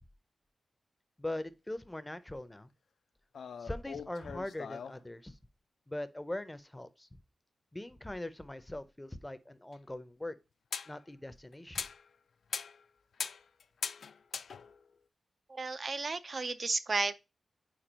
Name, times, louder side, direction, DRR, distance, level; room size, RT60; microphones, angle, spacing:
voice 1, 1.2-2.7 3.6-5.4 5.9-7.1 7.7-10.3 10.9-11.8, left 1 dB, 10° left, 0.5 m, -41 dB
sound 1, 3.3-5.0 9.7-9.8 10.7-11.0 11.5-12.1 12.5-12.8 13.1-14.9, left 6 dB, 80° left, 0.3 m, -41 dB
voice 2, 15.5-17.2, right 3 dB, 45° right, 0.4 m, -33 dB
4.6 x 4.5 x 5.0 m
wide cardioid pair, 120°, 0 cm